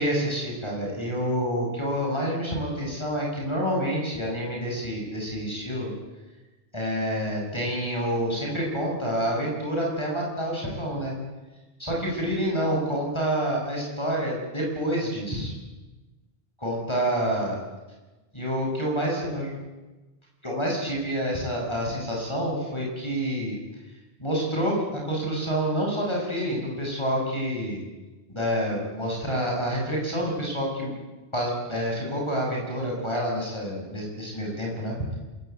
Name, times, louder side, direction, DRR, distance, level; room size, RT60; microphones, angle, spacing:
voice 1, 0.0-5.9 6.7-11.1 11.8-15.5 16.6-17.6 18.3-19.5 20.4-23.6 24.2-27.8 28.3-30.9 31.3-35.0, equal, 25° left, -2 dB, 7.9 m, -28 dB
26.5 x 16.5 x 9.6 m, 1.1 s
omnidirectional pair, 1.1 m